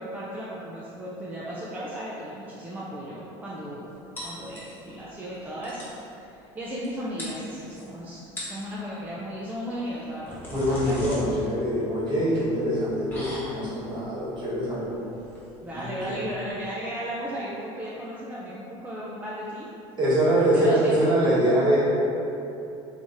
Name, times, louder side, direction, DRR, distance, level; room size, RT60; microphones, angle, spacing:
voice 1, 0.0-3.9 4.2-8.2 8.5-11.1 15.6-19.7 20.4-21.0, equal, 15° right, -7 dB, 0.4 m, -35 dB
sound 1, 4.2-5.0 5.3-5.4 5.6-6.0 6.8-6.9 7.2-7.8 8.2-8.7 9.9-16.5, left 1 dB, 15° left, 1.0 m, -40 dB
voice 2, 10.5-15.0 15.7-16.2 20.0-21.8, right 1 dB, 40° right, -9 dB, 1.4 m, -24 dB
3.5 x 3.2 x 2.7 m, 2.8 s
supercardioid pair, 115°, 12 cm